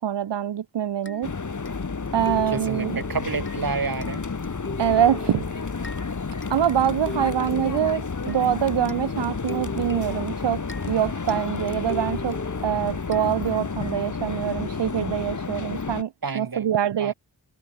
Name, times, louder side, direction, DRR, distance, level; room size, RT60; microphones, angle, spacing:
voice 1, 0.0-1.3 2.1-3.0 4.8-5.6 6.5-10.6 10.9-12.4 12.6-17.1, right 10 dB, 80° right, 0.8 m, -24 dB
sound 1, 1.1-13.8, left 3 dB, 30° left, 2.9 m, -40 dB
sound 2, 1.2-16.0, left 4 dB, 45° left, 2.7 m, -31 dB
voice 2, 2.5-4.3 16.2-16.7 17.0-17.1, right 4 dB, 55° right, 5.3 m, -29 dB
wide cardioid pair, 120°, 42 cm